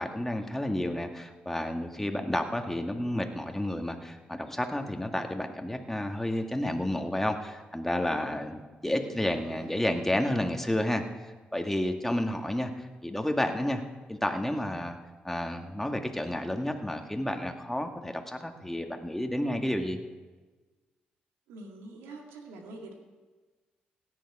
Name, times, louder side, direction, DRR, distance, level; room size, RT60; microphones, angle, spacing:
voice 1, 0.0-13.8 14.1-15.0 15.2-20.0, left 1 dB, 5° left, 4 dB, 1.9 m, -31 dB
voice 2, 9.1-9.8 21.5-22.9, right 2 dB, 80° right, 2 dB, 2.0 m, -46 dB
17.0 x 10.5 x 4.9 m, 1.3 s
hypercardioid pair, 40°, 4 cm